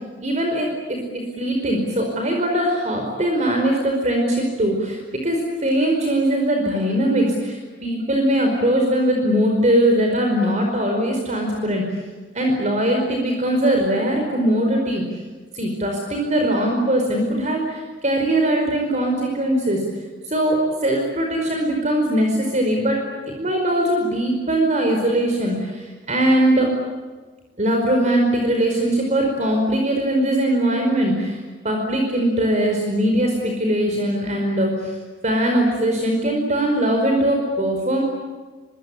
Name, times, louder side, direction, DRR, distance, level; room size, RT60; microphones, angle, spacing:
voice 1, 0.2-1.0 1.4-11.9 12.3-15.0 15.5-19.8 20.3-23.0 23.3-26.7 27.6-31.4 31.6-34.9 35.2-38.0, right 1 dB, 40° right, 2 dB, 4.9 m, -21 dB
25.5 x 24.5 x 8.6 m, 1.4 s
head